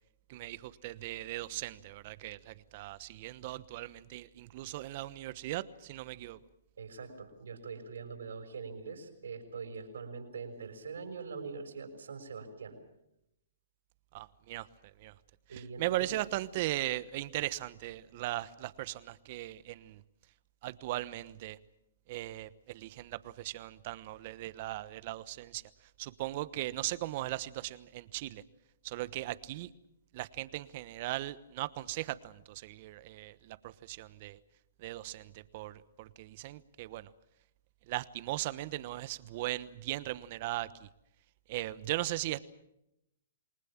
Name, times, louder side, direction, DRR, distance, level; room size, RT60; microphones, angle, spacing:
voice 1, 0.3-6.4 14.1-14.7 15.0-15.1 15.5-20.0 20.6-21.6 22.1-25.6 26.0-28.4 28.8-29.7 30.1-34.4 34.8-37.1 37.9-40.9 41.5-42.4, right 16 dB, 45° right, 16 dB, 1.1 m, -38 dB
voice 2, 6.8-12.8 15.5-16.1, right 5 dB, 85° right, 5 dB, 6.2 m, -43 dB
28.0 x 20.0 x 7.3 m, 0.84 s
hypercardioid pair, 140°, 0 cm